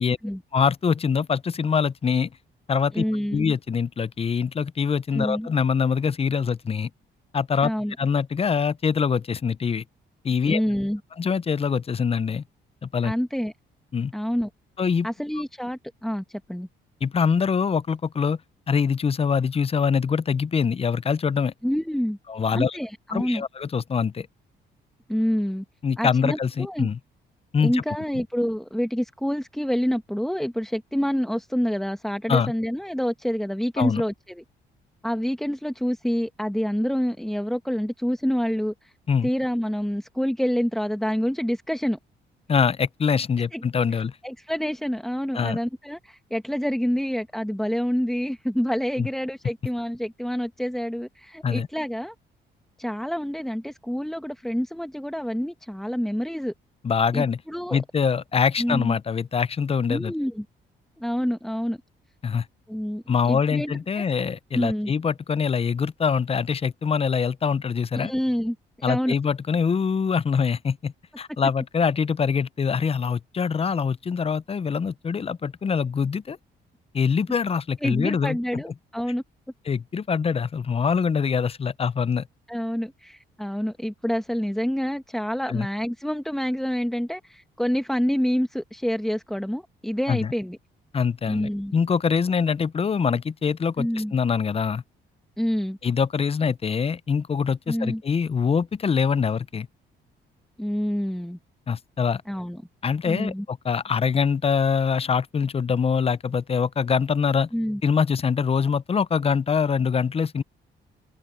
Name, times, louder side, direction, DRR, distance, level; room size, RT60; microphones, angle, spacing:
voice 1, 0.5-2.3 2.7-3.0 3.3-6.9 7.3-7.7 8.0-9.8 10.2-10.6 11.2-12.4 12.8-13.1 13.9-14.1 14.8-15.1 17.0-18.4 18.7-21.5 22.3-22.8 23.1-24.3 25.8-27.0 27.5-27.8 32.3-32.5 33.8-34.0 39.1-39.3 42.5-44.1 45.3-45.6 49.0-49.1 51.4-51.7 56.8-57.4 57.7-60.1 62.2-62.5 63.1-68.1 68.8-76.4 76.9-78.6 79.7-82.3 85.5-85.7 90.1-90.3 90.9-94.8 95.8-99.7 101.7-102.2 102.8-107.5 107.8-110.4, left 6 dB, 30° left, 0.6 m, -24 dB
voice 2, 2.9-3.5 5.1-5.5 7.6-7.9 10.4-11.0 13.0-13.5 14.1-14.5 15.0-16.7 21.6-22.2 22.5-23.4 25.1-25.6 26.0-26.9 27.6-34.4 35.0-38.9 39.2-42.0 43.5-43.6 44.2-52.1 52.8-56.5 57.1-57.8 58.6-58.9 59.9-60.4 61.0-61.8 62.7-64.0 64.5-64.9 67.9-69.2 77.8-79.2 82.5-90.6 91.3-91.7 93.8-94.1 95.4-95.8 97.7-98.0 100.6-101.4 102.3-102.6 103.1-103.4 107.5-107.8, equal, ahead, 1.2 m, -27 dB
cardioid pair, 90°, 20 cm